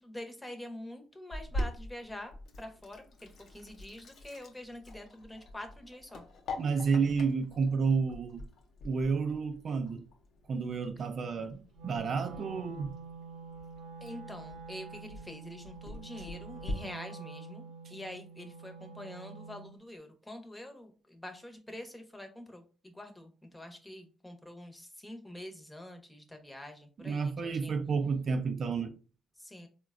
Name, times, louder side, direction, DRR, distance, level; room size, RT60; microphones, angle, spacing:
voice 1, 0.0-6.2 14.0-27.8 29.4-29.7, left 1 dB, 10° left, 0.7 m, -46 dB
Sink (filling or washing), 1.3-16.7, left 1 dB, 65° left, 0.6 m, -45 dB
voice 2, 6.6-8.4 8.8-10.0 10.5-13.0 27.0-28.9, right 5 dB, 50° right, 0.3 m, -31 dB
Wind instrument woodwind instrument, 11.7-19.8, right 4 dB, 85° right, 0.6 m, -47 dB
3.7 x 2.1 x 2.4 m
cardioid pair, 90°, 0 cm